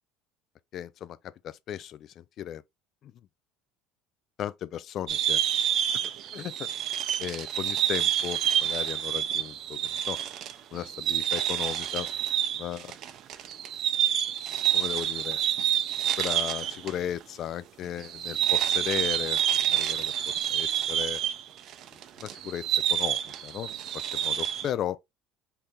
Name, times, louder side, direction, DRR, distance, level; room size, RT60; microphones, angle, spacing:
voice 1, 0.7-1.2 1.4-2.6 3.0-3.1 4.4-5.4 6.0-6.7 7.2-10.2 10.7-12.1 12.6-13.0 14.7-15.4 16.2-21.2 22.2-22.6 22.9-23.7 24.1-25.0, left 10 dB, 50° left, 0.3 m, -36 dB
sound 1, 5.1-16.9 17.2-17.3 18.0-24.7, right 10 dB, 55° right, 0.5 m, -28 dB
2.8 x 2.6 x 3.5 m
hypercardioid pair, 75°, 0 cm